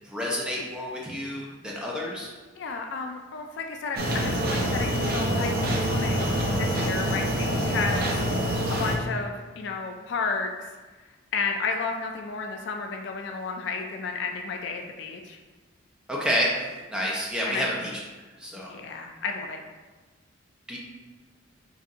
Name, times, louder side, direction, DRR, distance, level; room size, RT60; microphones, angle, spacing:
voice 1, 0.0-2.3 16.1-16.6 16.9-17.9 18.4-18.7 20.7-20.8, equal, 5° right, -4 dB, 0.6 m, -29 dB
voice 2, 2.5-6.3 6.6-8.1 8.7-10.5 11.3-15.4 17.4-17.7 18.7-19.6, left 4 dB, 60° left, 3 dB, 0.3 m, -32 dB
sound 1, 4.0-9.0, equal, 50° right, 0.7 m, -26 dB
4.0 x 2.5 x 3.6 m, 1.3 s
head